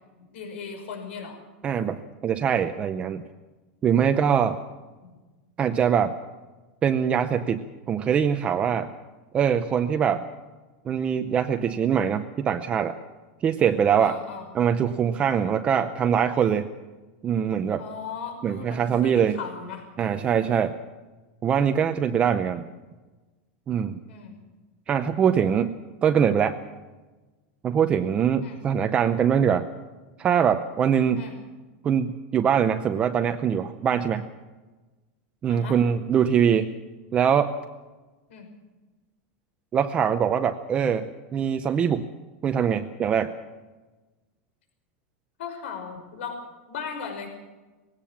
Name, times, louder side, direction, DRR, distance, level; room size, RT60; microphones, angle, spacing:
voice 1, 0.3-1.4 4.1-4.3 5.0-5.1 14.0-14.5 17.8-19.8 24.1-24.4 28.4-28.6 31.1-31.4 35.5-35.8 38.3-38.5 45.4-46.4 46.7-47.3, left 6 dB, 75° left, 5 dB, 5.7 m, -37 dB
voice 2, 1.6-3.2 3.8-4.6 5.6-6.2 6.8-8.9 9.3-10.3 10.9-13.0 13.4-14.2 14.5-16.7 17.2-17.8 18.4-19.4 20.0-20.7 21.4-22.6 23.7-24.0 24.9-26.6 27.6-29.7 30.2-31.2 31.8-34.3 35.4-36.7 37.1-37.5 39.7-42.1 42.4-43.3, right 8 dB, 20° right, 7 dB, 0.7 m, -23 dB
20.5 x 17.5 x 7.3 m, 1.2 s
supercardioid pair, 170°, 6 cm